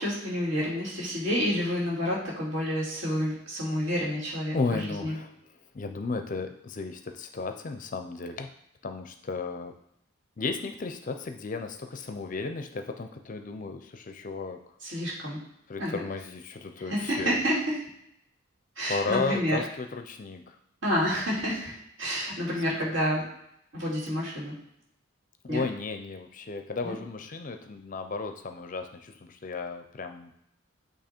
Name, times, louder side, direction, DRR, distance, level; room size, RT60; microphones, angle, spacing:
voice 1, 0.0-5.1 14.8-15.4 15.8-16.0 16.8-17.8 18.8-19.6 20.8-23.2 23.7-24.5 25.5-25.6 26.8-27.0, equal, 65° right, -5 dB, 2.5 m, -29 dB
voice 2, 4.5-5.3 5.7-8.5 8.8-9.7 10.4-14.6 15.7-17.4 18.9-20.6 25.4-30.3, left 3 dB, 40° left, 6 dB, 0.4 m, -34 dB
8.5 x 2.9 x 4.3 m, 0.77 s
head